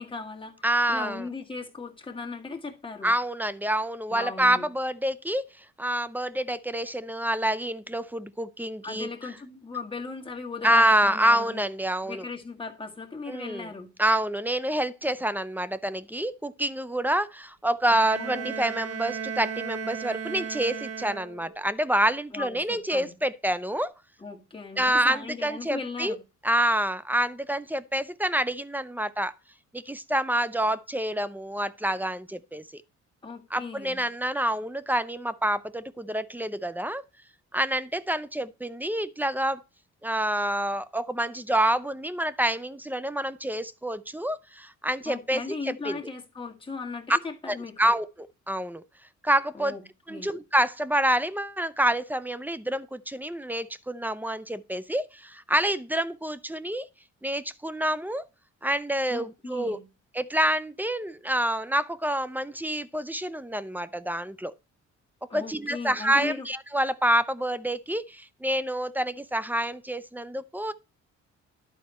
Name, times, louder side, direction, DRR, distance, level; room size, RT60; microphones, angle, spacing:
voice 1, 0.0-0.5 0.9-3.1 4.1-4.7 8.8-11.6 12.0-13.9 18.1-18.8 22.3-23.2 24.2-26.2 33.2-34.0 45.0-47.9 49.5-49.8 50.1-50.3 59.1-59.9 65.3-66.5, left 4 dB, 15° left, 1.7 m, -38 dB
voice 2, 0.6-1.2 3.0-9.1 10.6-12.2 13.3-13.7 14.0-23.9 24.8-26.2 26.4-29.3 29.7-32.6 33.5-37.0 37.5-39.6 40.0-46.0 47.1-47.2 47.5-48.8 49.2-49.8 50.1-56.9 57.2-58.2 58.6-59.8 60.1-64.5 65.3-70.7, right 1 dB, 5° right, 0.5 m, -27 dB
Bowed string instrument, 17.9-21.7, right 6 dB, 50° right, 0.9 m, -35 dB
11.5 x 4.2 x 4.3 m
cardioid pair, 90°, 30 cm